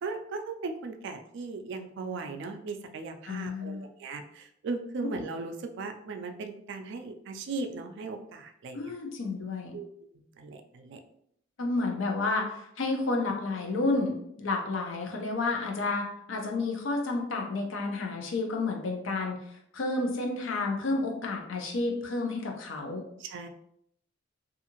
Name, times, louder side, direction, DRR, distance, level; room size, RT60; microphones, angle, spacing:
voice 1, 0.0-8.9 9.7-9.9 10.4-11.0 23.2-23.5, right 3 dB, 65° right, 6 dB, 0.3 m, -37 dB
voice 2, 3.3-3.9 5.0-5.1 8.7-9.8 11.6-19.4 19.7-23.0, left 3 dB, 70° left, 2 dB, 0.6 m, -30 dB
2.7 x 2.4 x 2.9 m, 0.72 s
head